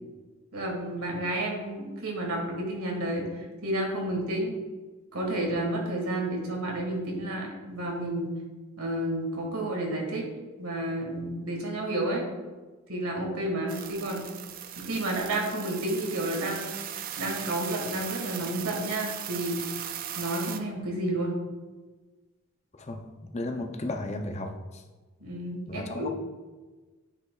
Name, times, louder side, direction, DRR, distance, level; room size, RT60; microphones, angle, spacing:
voice 1, 0.5-4.5 5.1-8.3 8.8-10.3 10.6-12.2 12.9-14.2 14.8-16.7 17.2-19.6 20.1-21.3 25.2-26.1, right 1 dB, 85° right, 0 dB, 1.6 m, -31 dB
sound 1, 13.7-20.6, right 10 dB, 40° right, 0.3 m, -38 dB
voice 2, 23.3-24.5 25.7-26.1, left 2 dB, 30° left, 4 dB, 0.5 m, -33 dB
9.6 x 5.1 x 2.4 m, 1.3 s
head